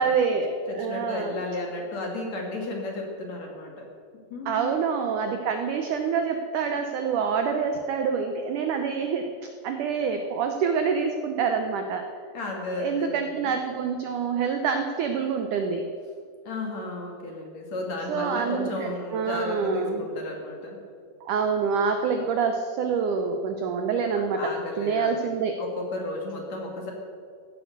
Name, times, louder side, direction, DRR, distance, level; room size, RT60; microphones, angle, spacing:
voice 1, 0.0-1.3 4.4-9.3 9.6-12.0 12.8-15.8 18.1-20.1 21.2-24.5 24.8-25.6, right 5 dB, 80° right, 5 dB, 1.8 m, -26 dB
voice 2, 0.7-3.7 4.3-4.8 12.3-13.5 16.4-20.8 24.1-25.3 25.6-26.9, left 2 dB, 50° left, 0 dB, 2.8 m, -33 dB
15.5 x 11.5 x 6.6 m, 2.2 s
omnidirectional pair, 4.7 m